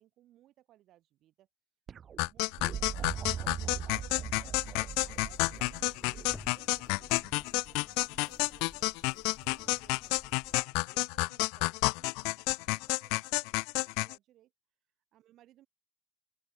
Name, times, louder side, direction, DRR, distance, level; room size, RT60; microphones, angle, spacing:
voice 1, 0.0-1.5 2.1-4.1 5.0-14.5 15.1-15.7, right 13 dB, 60° right, 3.9 m, -64 dB
sound 1, 1.9-7.8 9.4-9.9 12.5-12.6, right 8 dB, 40° right, 0.4 m, -41 dB
sound 2, 2.2-14.2, left 33 dB, 80° left, 0.4 m, -31 dB
sound 3, 4.5-10.6, left 2 dB, 10° left, 1.3 m, -55 dB
open air
supercardioid pair, 105°, 0 cm